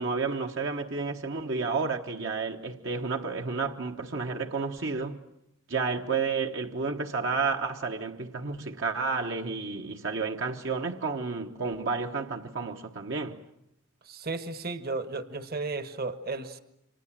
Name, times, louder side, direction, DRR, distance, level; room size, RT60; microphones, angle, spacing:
voice 1, 0.0-5.2 5.7-13.4, right 4 dB, 60° right, 1.3 m, -31 dB
voice 2, 14.1-16.6, right 3 dB, 45° right, 1.4 m, -34 dB
29.5 x 26.0 x 7.5 m
head